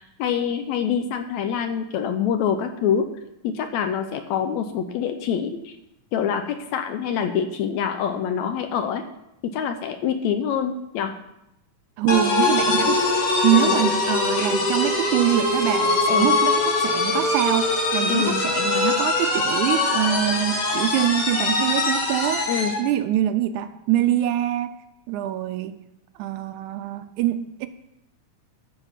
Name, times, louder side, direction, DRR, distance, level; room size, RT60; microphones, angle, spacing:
voice 1, 0.0-3.1 3.4-5.7 6.1-9.0 9.5-11.1 13.5-13.8 16.1-16.3 18.1-18.4 22.5-22.8, left 8 dB, 75° left, 7 dB, 1.8 m, -25 dB
voice 2, 12.0-22.5 22.8-24.7 25.1-25.8 26.2-27.7, right 12 dB, 80° right, 10 dB, 2.0 m, -24 dB
sound 1, 12.1-22.8, left 3 dB, 50° left, 2.6 m, -22 dB
13.0 x 4.7 x 5.7 m, 0.85 s
omnidirectional pair, 3.6 m